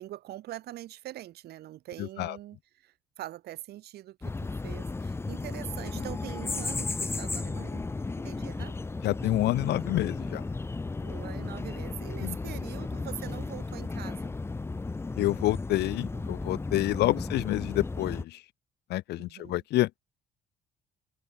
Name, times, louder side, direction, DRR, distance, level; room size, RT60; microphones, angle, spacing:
voice 1, 0.0-7.8 8.2-8.8 11.0-14.3 16.1-16.3 16.9-17.3 19.2-19.6, right 14 dB, 70° right, 4.7 m, -43 dB
voice 2, 2.0-2.4 9.0-10.4 12.2-12.3 15.2-18.4 18.9-19.9, left 16 dB, 80° left, 2.5 m, -28 dB
sound 1, 4.2-18.3, left 3 dB, 15° left, 0.8 m, -34 dB
open air
cardioid pair, 110°, 17 cm